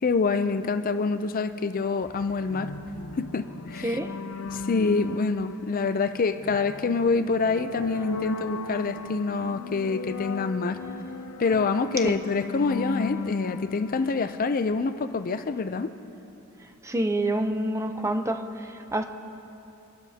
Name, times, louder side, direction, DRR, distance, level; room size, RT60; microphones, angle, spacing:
voice 1, 0.0-2.7 3.2-4.0 4.4-10.8 11.4-15.9, left 4 dB, 40° left, 10 dB, 0.4 m, -26 dB
sound 1, 2.5-15.0, left 3 dB, 90° left, 0.7 m, -37 dB
voice 2, 16.8-19.0, right 1 dB, 15° right, 6 dB, 0.6 m, -27 dB
25.5 x 12.0 x 2.8 m, 2.9 s
head